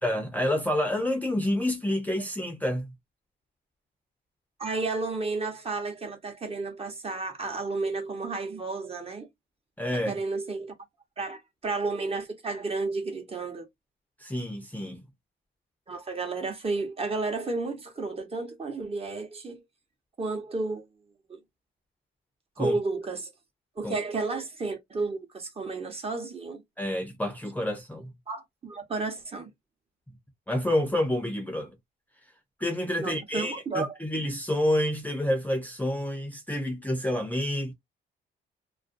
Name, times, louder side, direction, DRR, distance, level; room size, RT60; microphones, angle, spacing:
voice 1, 0.0-2.9 9.8-10.2 14.2-15.0 22.6-22.8 23.8-23.9 26.8-28.1 30.5-31.7 32.6-37.7, left 1 dB, 10° left, 0.6 m, -28 dB
voice 2, 4.6-9.3 9.9-10.7 11.2-13.7 15.9-19.6 20.2-20.8 21.3-21.4 22.6-23.3 23.8-26.6 28.3-29.5 33.0-34.0, right 3 dB, 30° right, 0.9 m, -32 dB
2.5 x 2.2 x 2.5 m
cardioid pair, 90°, 20 cm